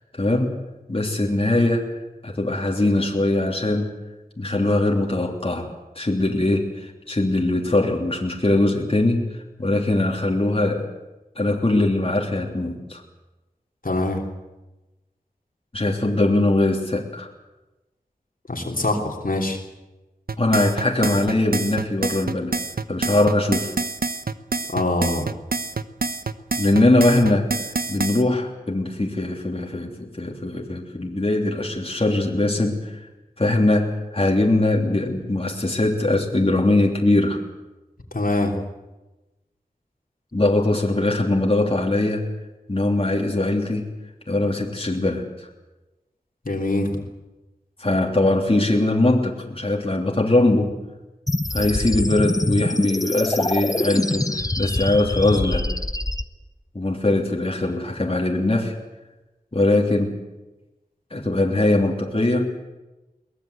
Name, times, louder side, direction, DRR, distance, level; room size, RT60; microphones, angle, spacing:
voice 1, 0.1-0.5 0.9-1.9 2.2-3.9 4.4-5.7 5.9-9.3 9.6-10.9 11.4-13.0 15.7-17.3 20.4-22.5 22.9-23.7 26.6-27.5 27.9-33.0 33.4-37.4 40.3-42.3 42.7-43.9 44.3-45.3 47.8-50.7 51.5-55.7 56.7-58.7 59.5-60.2 61.1-62.5, left 2 dB, 40° left, 0 dB, 3.2 m, -21 dB
voice 2, 13.8-14.2 18.5-19.6 24.7-25.3 38.1-38.5 46.4-47.0, left 2 dB, 65° left, 1 dB, 3.3 m, -23 dB
sound 1, 20.3-28.2, right 3 dB, 75° right, 1.0 m, -26 dB
sound 2, 51.3-56.2, left 1 dB, 20° left, 1.1 m, -24 dB
22.5 x 19.0 x 8.3 m, 1.1 s
wide cardioid pair, 60°, 15 cm